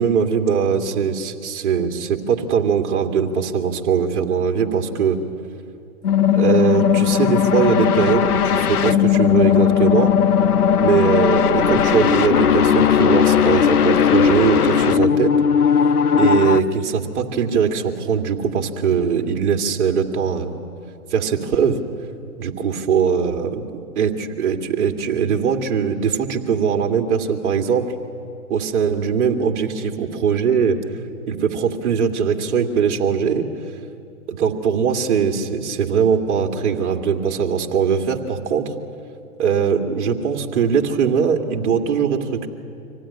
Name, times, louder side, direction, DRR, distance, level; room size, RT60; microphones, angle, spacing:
voice 1, 0.0-5.2 6.4-10.1 10.7-15.3 16.2-20.6 21.1-21.8 22.4-27.8 28.5-30.8 31.3-33.5 34.3-38.7 39.4-42.5, right 7 dB, 50° right, 2 dB, 2.5 m, -21 dB
sound 1, 6.0-16.6, left 8 dB, 85° left, 1.0 m, -17 dB
25.5 x 16.5 x 9.9 m, 2.4 s
hypercardioid pair, 145°, 44 cm